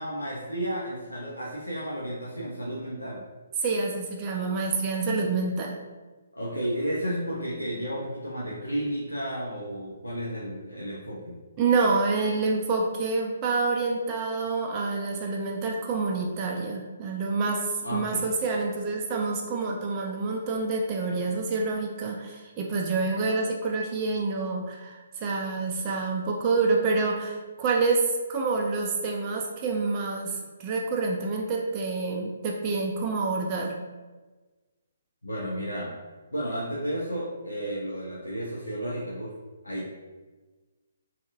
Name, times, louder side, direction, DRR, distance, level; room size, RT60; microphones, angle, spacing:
voice 1, 0.0-3.2 6.3-11.4 17.8-18.3 35.2-35.9 36.3-39.3 39.6-39.9, equal, 85° left, -7 dB, 0.6 m, -32 dB
voice 2, 3.6-5.7 11.6-33.8, right 3 dB, 25° right, 0 dB, 0.3 m, -27 dB
2.7 x 2.5 x 2.4 m, 1.3 s
figure-of-eight pair, 135°, 0 cm